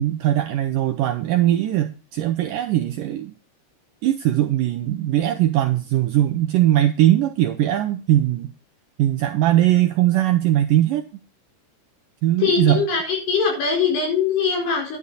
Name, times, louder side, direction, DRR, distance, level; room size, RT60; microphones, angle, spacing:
voice 1, 0.0-3.3 4.0-8.5 9.0-11.1 12.2-12.8, right 13 dB, 80° right, 6 dB, 2.0 m, -20 dB
voice 2, 12.4-15.0, left 6 dB, 75° left, 0 dB, 6.7 m, -22 dB
11.0 x 9.9 x 4.0 m, 0.34 s
omnidirectional pair, 4.7 m